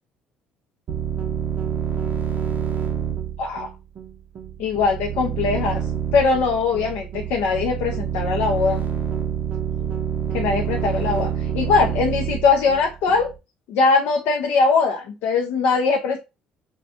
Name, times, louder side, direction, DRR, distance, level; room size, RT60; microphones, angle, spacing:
sound 1, 0.9-13.4, right 8 dB, 50° right, 0.5 m, -27 dB
voice 1, 3.4-3.7 4.6-5.8 6.1-8.8 9.8-9.9 10.3-13.3 13.7-16.2, left 4 dB, 80° left, 2 dB, 0.4 m, -21 dB
2.6 x 2.2 x 2.7 m, 0.27 s
supercardioid pair, 85°, 3 cm